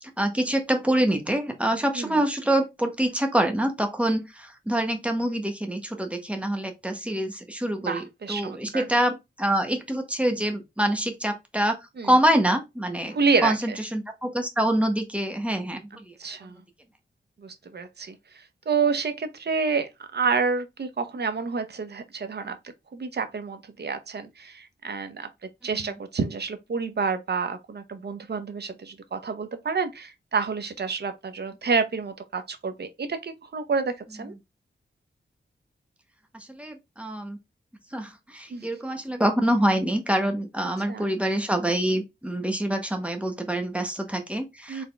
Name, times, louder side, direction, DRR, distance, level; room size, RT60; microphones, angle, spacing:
voice 1, 0.0-11.8 12.0-13.2 13.4-16.2 36.3-37.4 37.9-44.8, right 1 dB, 5° right, 1.2 m, -26 dB
voice 2, 7.8-8.9 12.0-12.1 13.1-13.8 16.2-16.6 17.4-25.3 25.6-34.3 38.5-38.7 40.9-41.2 44.7-44.8, right 5 dB, 60° right, 0.9 m, -29 dB
4.2 x 3.6 x 3.4 m
wide cardioid pair, 90°, 19 cm